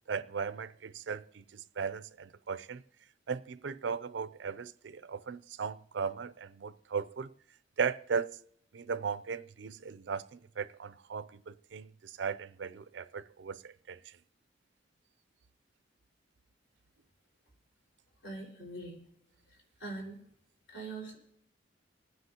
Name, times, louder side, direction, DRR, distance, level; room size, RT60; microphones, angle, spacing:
voice 1, 0.1-2.8 3.3-7.3 7.8-8.4 8.7-14.0, right 6 dB, 65° right, 0.4 m, -37 dB
voice 2, 18.2-19.0 19.8-20.2 20.7-21.2, right 2 dB, 80° left, 4.8 m, -42 dB
28.5 x 9.6 x 2.9 m
head